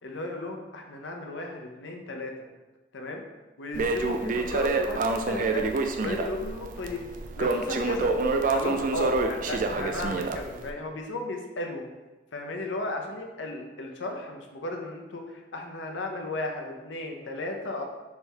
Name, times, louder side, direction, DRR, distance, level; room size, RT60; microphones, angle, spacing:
voice 1, 0.0-2.3 2.9-3.2 3.6-5.6 6.0-7.1 7.4-8.1 8.5-11.8 12.3-17.8, left 2 dB, 75° left, 3 dB, 0.7 m, -35 dB
Crackle, 3.7-10.7, right 3 dB, 45° right, 0.3 m, -27 dB
3.5 x 3.3 x 4.4 m, 1.2 s
head